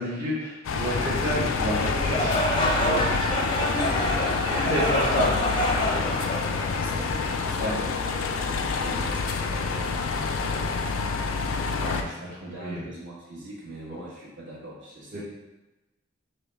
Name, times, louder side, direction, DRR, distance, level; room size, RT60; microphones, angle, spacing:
voice 1, 0.0-2.3 2.8-3.0 3.6-3.9 4.5-5.3 7.6-7.7 11.8-12.8 15.1-15.2, equal, 45° right, -10 dB, 0.9 m, -29 dB
sound 1, 0.6-12.0, left 4 dB, 85° left, 0.4 m, -27 dB
sound 2, 2.0-7.2, left 1 dB, 25° left, 0.5 m, -27 dB
voice 2, 3.3-6.2 6.8-10.7 12.1-12.2 12.4-15.2, right 1 dB, 65° right, -7 dB, 1.4 m, -42 dB
5.5 x 2.1 x 3.3 m, 1.1 s
head